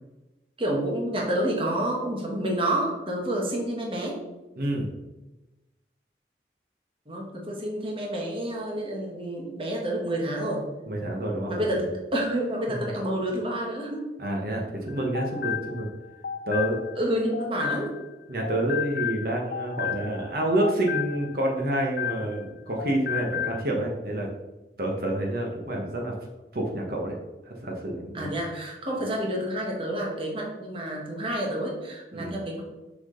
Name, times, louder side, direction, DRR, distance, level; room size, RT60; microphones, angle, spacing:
voice 1, 0.6-4.2 7.1-10.7 11.5-14.0 17.0-17.9 28.1-32.6, right 1 dB, 30° right, -1 dB, 1.3 m, -29 dB
voice 2, 4.6-4.9 10.9-11.9 12.7-12.8 14.2-15.9 16.5-16.8 18.3-24.3 24.8-26.1 26.5-27.2 27.4-28.3 32.1-32.4, right 1 dB, 55° right, 0 dB, 1.2 m, -28 dB
sound 1, 14.9-18.1 18.4-22.5 22.8-23.6, left 8 dB, 60° left, 0.4 m, -33 dB
6.5 x 6.1 x 3.8 m, 1.1 s
head